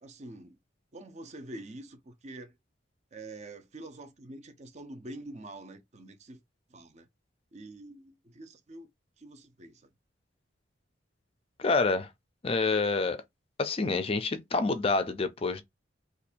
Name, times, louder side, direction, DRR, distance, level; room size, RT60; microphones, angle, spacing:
voice 1, 0.0-0.6 0.9-2.6 3.1-6.4 6.7-7.1 7.5-8.9 9.2-9.9, right 2 dB, 35° right, 0.6 m, -46 dB
voice 2, 11.6-12.1 12.4-13.2 13.6-15.6, left 3 dB, 30° left, 0.4 m, -27 dB
2.6 x 2.5 x 4.1 m
head